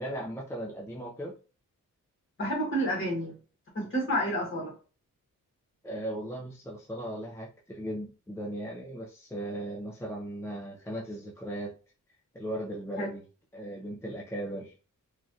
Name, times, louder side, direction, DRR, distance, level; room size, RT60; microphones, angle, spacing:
voice 1, 0.0-1.4 5.8-11.7 12.3-13.2 13.5-14.7, right 1 dB, 10° left, -3 dB, 0.4 m, -37 dB
voice 2, 2.4-3.3 3.7-4.7 13.0-13.1, equal, 40° left, -2 dB, 1.4 m, -29 dB
3.1 x 2.4 x 2.6 m, 0.35 s
wide cardioid pair, 175°, 32 cm